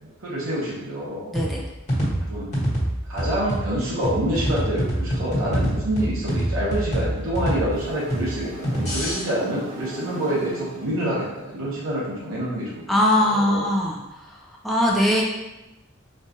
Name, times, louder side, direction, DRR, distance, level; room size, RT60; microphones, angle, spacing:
voice 1, 0.0-1.3 2.3-2.5 3.1-12.8 13.2-13.7, right 1 dB, 80° right, -7 dB, 1.1 m, -27 dB
sound 1, 1.3-9.2, equal, 35° left, 1.4 m, -26 dB
sound 2, 7.7-12.0, right 1 dB, 65° right, 1.3 m, -41 dB
voice 2, 12.9-14.0 14.6-15.2, left 1 dB, ahead, -4 dB, 0.6 m, -20 dB
4.4 x 2.4 x 2.9 m, 0.99 s
head